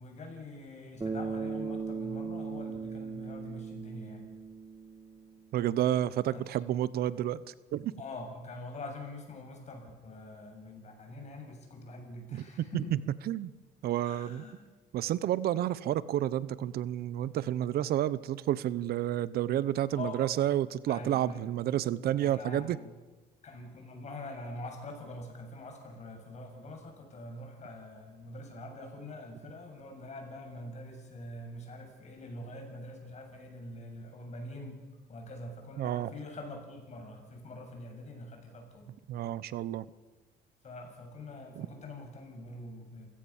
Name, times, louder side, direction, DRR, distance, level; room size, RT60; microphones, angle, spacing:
voice 1, 0.0-4.2 6.3-6.4 8.0-13.0 14.0-14.6 19.9-20.2 20.9-21.5 22.2-22.9 23.4-34.8 35.1-38.9 40.6-43.1, left 2 dB, 40° left, 3 dB, 7.4 m, -44 dB
Bass guitar, 1.0-5.4, right 5 dB, 20° right, 2.0 m, -38 dB
voice 2, 5.5-7.9 12.3-12.4 12.7-12.8 13.3-13.5 13.8-14.4 14.9-22.8 35.8-36.1 39.1-39.8 41.6-41.7, right 12 dB, 65° right, 18 dB, 0.8 m, -30 dB
29.0 x 16.5 x 7.2 m, 1.3 s
cardioid pair, 110°, 17 cm